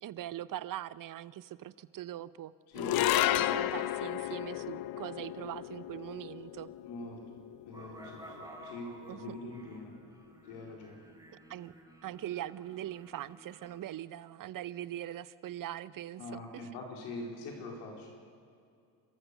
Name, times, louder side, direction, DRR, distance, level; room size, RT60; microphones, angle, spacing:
voice 1, 0.0-6.7 9.1-9.3 11.5-16.7, right 12 dB, 45° right, 18 dB, 0.8 m, -42 dB
voice 2, 2.7-3.5 6.8-7.2 7.7-8.3 8.6-9.9 10.4-11.0 16.2-18.2, left 2 dB, 80° left, 0 dB, 4.6 m, -44 dB
sound 1, 2.8-9.2, left 14 dB, 50° left, 0.7 m, -33 dB
sound 2, 7.7-13.8, right 1 dB, 10° right, 4.9 m, -53 dB
29.5 x 14.0 x 6.8 m, 2.4 s
hypercardioid pair, 60°, 45 cm